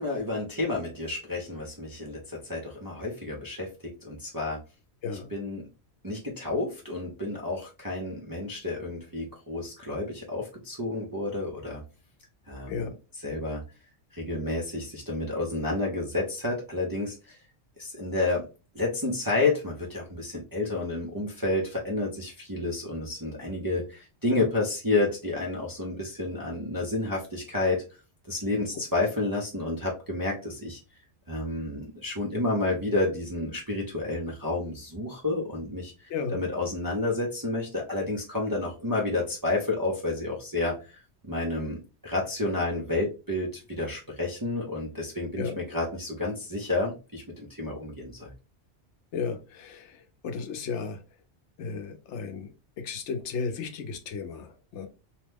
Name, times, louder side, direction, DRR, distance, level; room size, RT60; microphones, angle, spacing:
voice 1, 0.0-3.7 4.0-4.6 5.3-5.6 6.0-11.8 12.5-13.6 14.1-17.4 17.8-18.4 18.7-27.8 28.3-30.8 31.3-48.3, left 2 dB, 30° right, -3 dB, 0.4 m, -30 dB
voice 2, 49.1-49.9 50.2-51.0 51.6-52.5 52.8-54.9, left 5 dB, 80° left, 6 dB, 0.9 m, -34 dB
2.9 x 2.1 x 3.3 m, 0.32 s
omnidirectional pair, 1.2 m